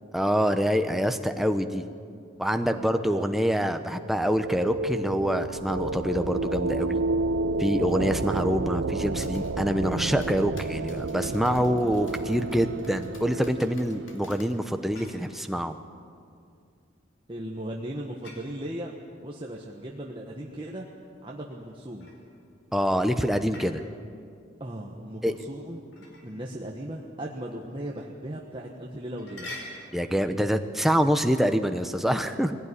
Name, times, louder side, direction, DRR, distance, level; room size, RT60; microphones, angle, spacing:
voice 1, 0.1-1.8 2.4-7.0 7.6-15.8 22.7-23.8 25.2-25.3 29.9-32.6, equal, ahead, 7 dB, 0.8 m, -26 dB
sound 1, 3.9-14.5, right 3 dB, 70° right, 0.5 m, -31 dB
sound 2, 8.9-15.1, left 2 dB, 85° left, 2.4 m, -51 dB
sound 3, 14.5-15.5 18.2-18.5 21.5-22.5 23.2-23.8 25.9-26.3 27.1-27.2 27.7-27.8 28.6-28.7 29.1-30.0, left 1 dB, 70° left, 4.8 m, -44 dB
voice 2, 17.3-18.9 19.2-20.9 21.2-22.1 24.6-29.5, right 1 dB, 25° right, -1 dB, 1.4 m, -37 dB
20.5 x 17.0 x 10.0 m, 2.4 s
head